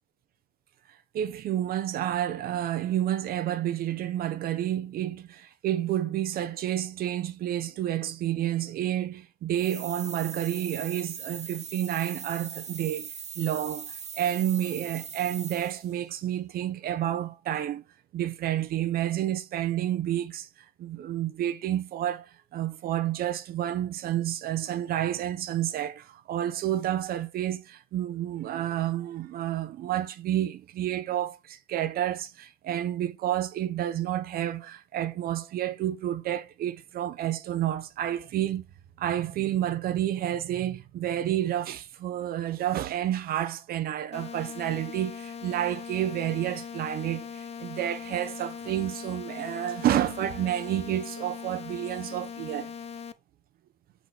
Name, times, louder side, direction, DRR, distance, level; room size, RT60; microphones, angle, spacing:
voice 1, 1.1-13.1 13.4-17.8 18.1-20.5 20.8-22.3 22.5-38.6 39.0-52.7, right 12 dB, 65° right, 0.7 m, -30 dB
sound 1, 9.5-16.0, right 6 dB, 40° right, 1.1 m, -40 dB
sound 2, 44.1-53.1, left 7 dB, 40° left, 0.5 m, -40 dB
5.8 x 4.1 x 4.2 m
cardioid pair, 110°, 17 cm